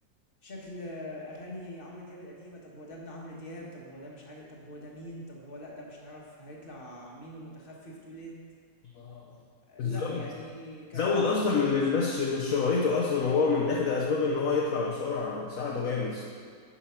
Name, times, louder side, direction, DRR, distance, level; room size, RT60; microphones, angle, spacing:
voice 1, 0.4-8.4 9.7-12.1, equal, 30° left, -3 dB, 1.6 m, -43 dB
voice 2, 8.9-9.4 9.8-10.3 10.9-16.2, left 4 dB, 55° left, -2 dB, 1.2 m, -27 dB
10.0 x 5.6 x 5.8 m, 2.1 s
omnidirectional pair, 1.9 m